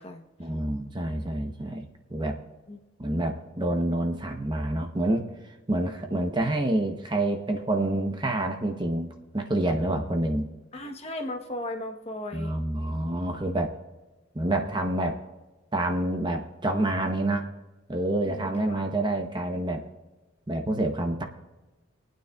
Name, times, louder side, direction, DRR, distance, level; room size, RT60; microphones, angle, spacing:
voice 1, 0.4-2.4 3.0-5.2 5.7-9.1 9.3-10.5 12.3-13.7 14.3-15.2 15.7-17.5 17.9-19.8 20.5-21.2, right 1 dB, 20° right, 4 dB, 0.8 m, -27 dB
voice 2, 10.7-12.5 18.2-18.9, left 1 dB, 30° left, 4 dB, 0.9 m, -36 dB
24.5 x 9.2 x 2.3 m, 1.1 s
head